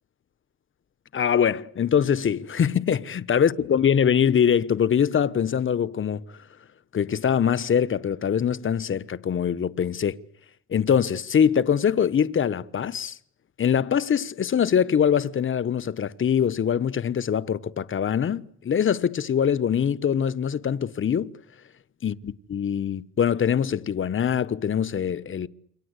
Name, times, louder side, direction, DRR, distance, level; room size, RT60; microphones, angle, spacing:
voice 1, 1.1-6.2 6.9-10.2 10.7-13.2 13.6-21.3 22.0-25.5, left 8 dB, 40° left, 1.2 m, -23 dB
28.5 x 24.5 x 8.3 m
cardioid pair, 90°, 30 cm